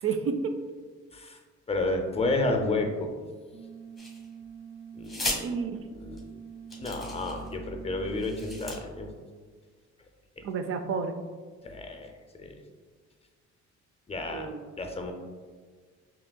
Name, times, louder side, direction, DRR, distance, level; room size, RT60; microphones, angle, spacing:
voice 1, 0.0-0.5 5.4-5.8 10.4-11.2 14.3-14.7, right 5 dB, 45° right, 7 dB, 0.4 m, -30 dB
voice 2, 1.7-3.1 4.9-5.6 6.0-6.2 6.8-9.1 11.6-12.5 14.1-14.5 14.8-15.1, left 2 dB, 20° left, 4 dB, 0.5 m, -31 dB
sound 1, 3.5-8.7, right 7 dB, 25° right, 1.0 m, -45 dB
sound 2, 4.0-4.5 5.0-5.4 6.2-6.3 6.7-7.5 8.1-8.8, left 1 dB, ahead, 1.2 m, -35 dB
5.1 x 2.9 x 2.2 m, 1.5 s
cardioid pair, 90°, 30 cm